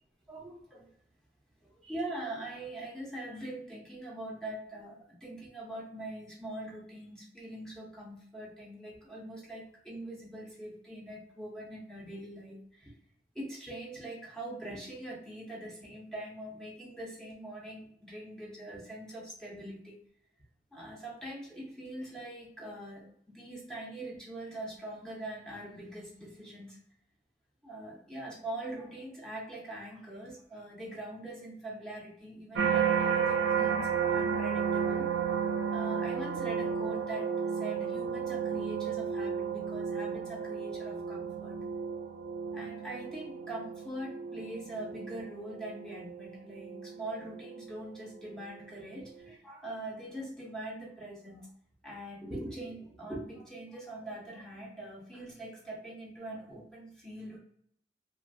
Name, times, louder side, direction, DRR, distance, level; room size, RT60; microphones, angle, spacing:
voice 1, 0.3-0.9 1.6-5.0 5.2-12.9 13.3-19.9 20.7-26.8 27.6-41.6 42.5-51.5 51.8-57.4, right 1 dB, 5° left, -3 dB, 0.6 m, -43 dB
sound 1, 32.5-47.7 48.3-48.7, right 7 dB, 80° right, 0.4 m, -33 dB
2.5 x 2.3 x 2.6 m, 0.67 s
head